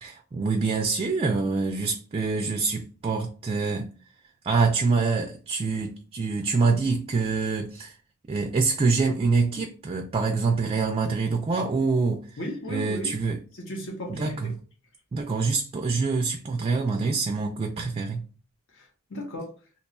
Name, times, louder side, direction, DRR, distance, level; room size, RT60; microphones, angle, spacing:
voice 1, 0.0-3.9 4.4-8.0 8.3-12.4 12.7-13.4 14.1-14.5 15.1-18.3, right 4 dB, 25° right, 0.3 m, -25 dB
voice 2, 12.4-13.1 13.5-14.5 18.7-19.5, equal, 60° left, 0.8 m, -35 dB
2.8 x 2.2 x 4.1 m
head